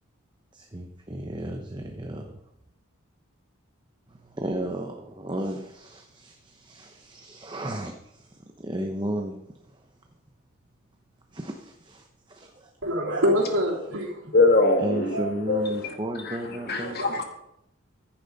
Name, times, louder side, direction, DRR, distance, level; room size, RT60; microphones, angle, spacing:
voice 1, 0.5-2.3 4.1-9.4 11.3-12.7 13.1-13.2 14.8-17.0, right 1 dB, 20° right, 0.9 m, -34 dB
voice 2, 12.8-14.3 17.0-17.2, equal, 80° right, 3.4 m, -25 dB
voice 3, 14.3-15.9 16.2-16.4 16.7-17.2, left 2 dB, 50° left, 2.1 m, -22 dB
15.0 x 10.5 x 4.1 m
head